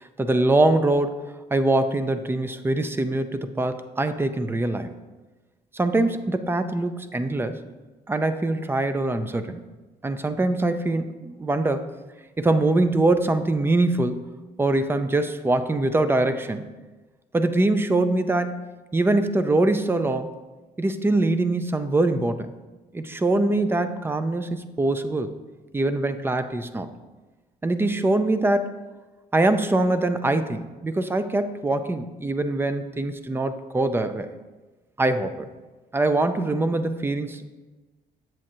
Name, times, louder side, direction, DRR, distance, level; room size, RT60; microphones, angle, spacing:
voice 1, 0.0-4.9 5.7-7.6 8.1-9.6 10.0-11.9 12.4-14.3 14.6-16.7 17.3-20.3 20.8-22.5 22.9-25.4 25.7-26.9 27.6-28.8 29.3-34.3 35.0-35.5 35.9-37.5, right 2 dB, 15° right, 10 dB, 0.4 m, -23 dB
7.5 x 7.3 x 2.7 m, 1.2 s
cardioid pair, 100°, 15 cm